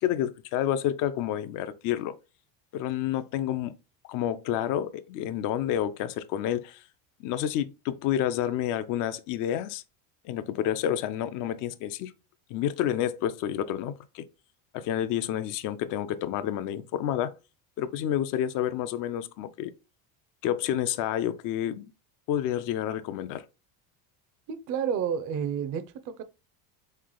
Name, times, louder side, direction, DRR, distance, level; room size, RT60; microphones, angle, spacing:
voice 1, 0.0-2.1 2.7-3.7 4.1-6.8 7.2-9.8 10.2-12.1 12.5-14.2 14.7-17.3 17.8-19.7 20.4-21.9 22.3-23.4, left 11 dB, 45° left, 0.5 m, -29 dB
voice 2, 24.5-26.2, right 7 dB, 45° right, 0.5 m, -30 dB
3.6 x 3.3 x 3.7 m
cardioid pair, 135°, 45 cm